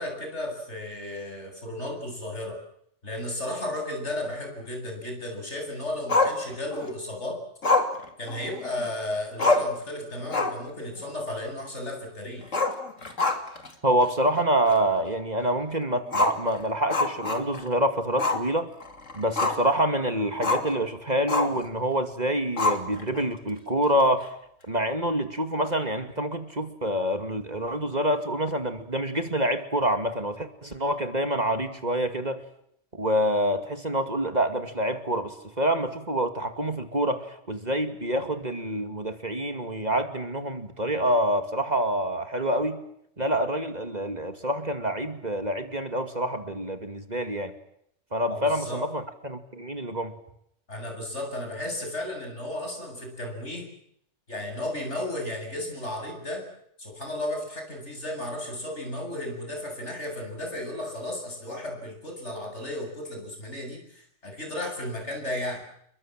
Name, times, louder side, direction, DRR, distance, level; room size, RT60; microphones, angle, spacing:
voice 1, 0.0-2.6 3.0-7.4 8.2-12.6 48.3-48.8 50.7-53.7 54.3-56.5 56.8-65.6, left 1 dB, 65° left, 3 dB, 8.5 m, -34 dB
Growling, 6.1-6.9 7.6-8.9 9.1-9.2 9.4-9.8 10.2-10.7 11.0-11.1 12.4-13.7 14.0-14.1 14.7-14.8 16.1-17.7 18.2-18.5 18.8-19.7 20.4-20.7 21.3-21.6 22.6-23.2, left 3 dB, 85° left, 3.2 m, -26 dB
voice 2, 13.8-18.7 19.1-24.3 24.7-32.4 32.9-42.8 43.2-47.5 48.1-50.1, right 1 dB, 35° right, 7 dB, 2.5 m, -27 dB
30.0 x 23.0 x 7.6 m, 0.72 s
omnidirectional pair, 1.3 m